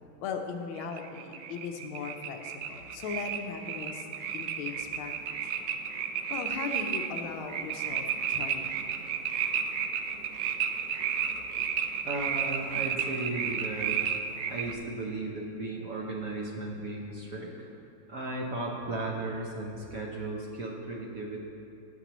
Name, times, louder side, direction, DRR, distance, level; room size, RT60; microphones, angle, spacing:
voice 1, 0.2-4.1 4.3-5.1 6.3-8.7, left 5 dB, 80° left, 4 dB, 1.6 m, -38 dB
sound 1, 0.8-14.7, right 7 dB, 90° right, 1.5 m, -32 dB
voice 2, 12.0-14.1 14.5-17.7 18.1-21.4, right 2 dB, 55° right, -2 dB, 1.1 m, -35 dB
17.5 x 6.1 x 3.0 m, 2.8 s
omnidirectional pair, 2.3 m